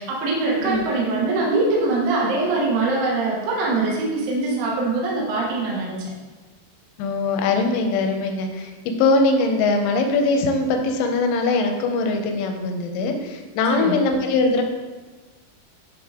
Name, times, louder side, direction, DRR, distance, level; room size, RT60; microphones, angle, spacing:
voice 1, 0.0-6.1 13.7-14.0, right 3 dB, 70° right, -4 dB, 2.3 m, -23 dB
voice 2, 7.0-14.6, left 3 dB, 85° left, 4 dB, 2.8 m, -21 dB
9.5 x 3.8 x 3.6 m, 1.3 s
omnidirectional pair, 5.2 m